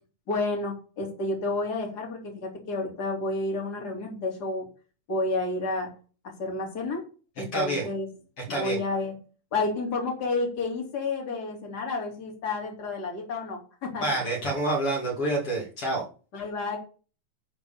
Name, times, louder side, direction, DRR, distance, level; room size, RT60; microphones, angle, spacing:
voice 1, 0.3-4.7 5.1-5.9 6.2-7.0 7.4-8.1 8.5-9.1 9.5-14.2 16.3-16.8, left 3 dB, 35° left, 0 dB, 3.4 m, -30 dB
voice 2, 7.4-7.9 8.5-8.8 14.0-16.1, right 1 dB, 50° left, -3 dB, 3.4 m, -28 dB
11.5 x 4.6 x 7.1 m, 0.37 s
omnidirectional pair, 3.4 m